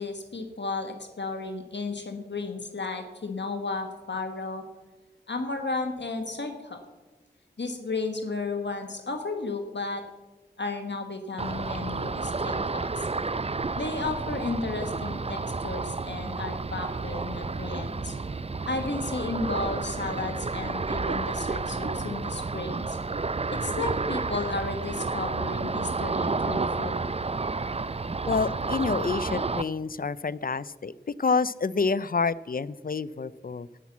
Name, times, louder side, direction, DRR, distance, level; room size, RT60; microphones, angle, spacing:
voice 1, 0.0-4.6 5.3-6.8 7.6-10.0 10.6-13.1 13.8-18.2 18.7-23.0 23.5-27.0, left 3 dB, 80° left, 5 dB, 1.3 m, -33 dB
Ocean, 11.4-29.6, right 3 dB, 35° right, 0.5 m, -31 dB
voice 2, 28.3-30.9 31.2-33.7, left 4 dB, 55° left, 18 dB, 0.5 m, -28 dB
17.5 x 6.0 x 7.2 m, 1.2 s
wide cardioid pair, 40°, 18 cm